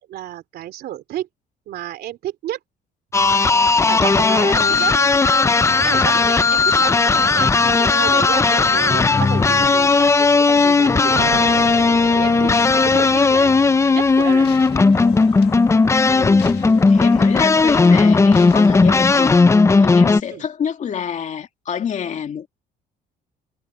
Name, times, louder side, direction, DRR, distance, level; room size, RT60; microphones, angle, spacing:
voice 1, 0.1-1.3 1.7-2.6 3.9-4.9 5.8-11.7 12.1-12.5 12.8-13.5 13.9-14.6 20.3-20.4, right 13 dB, 70° right, 3.1 m, -31 dB
sound 1, 3.1-20.2, left 4 dB, 15° left, 0.6 m, -15 dB
sound 2, 3.8-19.3, left 14 dB, 75° left, 1.6 m, -37 dB
sound 3, 6.5-14.6, right 17 dB, 85° right, 7.7 m, -37 dB
voice 2, 16.1-22.5, left 8 dB, 45° left, 2.4 m, -28 dB
cardioid pair, 110°, 17 cm